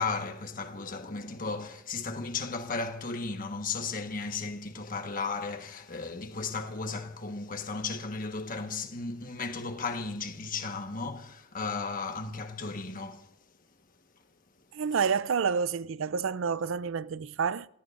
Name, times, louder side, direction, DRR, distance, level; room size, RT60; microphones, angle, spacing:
voice 1, 0.0-13.3, left 4 dB, 45° left, 1.4 m, -35 dB
voice 2, 14.7-17.7, right 6 dB, 75° right, 0.5 m, -29 dB
28.0 x 17.5 x 2.6 m
head